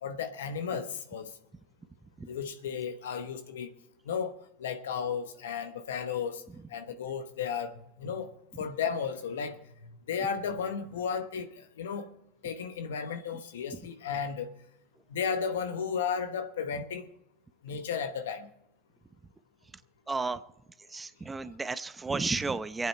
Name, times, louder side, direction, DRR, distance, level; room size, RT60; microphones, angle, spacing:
voice 1, 0.0-1.3 2.3-3.7 4.1-4.3 4.6-6.4 6.7-8.3 8.6-9.6 10.1-12.1 12.4-14.5 15.1-17.1 17.6-18.5, left 6 dB, 90° left, 1.0 m, -34 dB
voice 2, 20.1-20.4 20.9-22.9, right 3 dB, 15° right, 0.7 m, -32 dB
22.5 x 8.9 x 4.4 m
hypercardioid pair, 95°, 0 cm